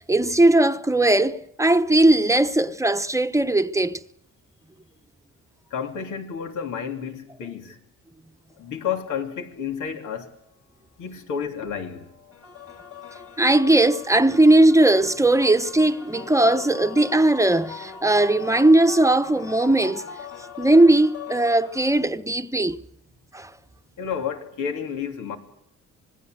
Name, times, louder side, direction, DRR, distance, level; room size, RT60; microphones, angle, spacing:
voice 1, 0.0-4.0 13.4-20.0 20.6-22.8 23.3-23.5, right 2 dB, 10° right, 1.1 m, -18 dB
voice 2, 5.7-7.8 8.6-10.3 11.0-12.1 24.0-25.4, left 7 dB, 80° left, 3.3 m, -31 dB
sound 1, 11.8-22.0, left 7 dB, 50° left, 4.3 m, -41 dB
26.0 x 21.5 x 8.0 m
cardioid pair, 90°, 30 cm